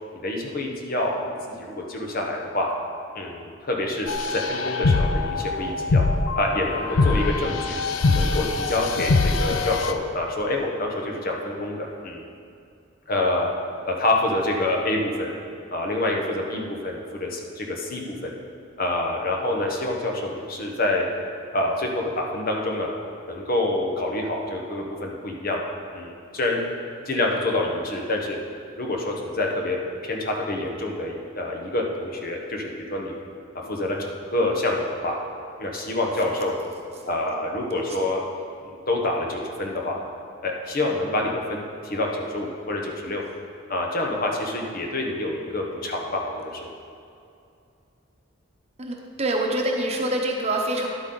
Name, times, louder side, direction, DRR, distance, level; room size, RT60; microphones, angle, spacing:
voice 1, 0.2-2.7 3.1-4.1 4.3-6.0 6.4-7.8 8.1-12.2 13.1-13.5 13.8-15.3 15.7-18.3 18.8-21.1 21.5-22.9 23.3-25.6 25.9-26.6 27.1-28.4 28.8-33.1 33.7-35.2 35.6-36.5 37.1-38.2 38.7-40.0 40.4-43.2 43.7-46.7, left 2 dB, 45° left, 0 dB, 1.1 m, -27 dB
sound 1, 4.1-9.9, left 3 dB, 75° left, 0.5 m, -23 dB
voice 2, 48.8-50.9, right 1 dB, 30° right, 1 dB, 1.0 m, -26 dB
11.0 x 8.2 x 3.9 m, 2.5 s
head